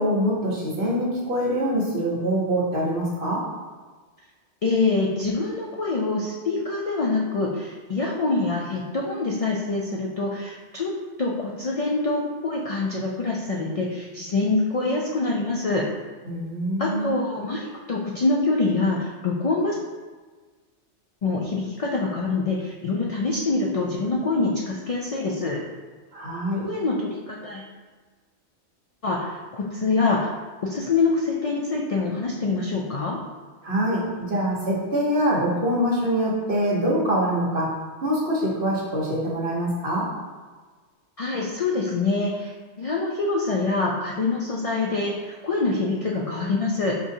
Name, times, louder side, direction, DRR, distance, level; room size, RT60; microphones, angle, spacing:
voice 1, 0.0-3.4 16.3-17.2 26.1-26.6 33.6-37.7 38.0-40.1, equal, 65° right, -6 dB, 1.4 m, -24 dB
voice 2, 4.6-10.9 11.2-15.8 16.8-19.8 21.2-25.6 26.6-27.7 29.0-30.3 30.6-33.2 41.2-46.9, left 3 dB, 65° left, -2 dB, 0.3 m, -25 dB
5.0 x 3.0 x 2.7 m, 1.4 s
omnidirectional pair, 1.2 m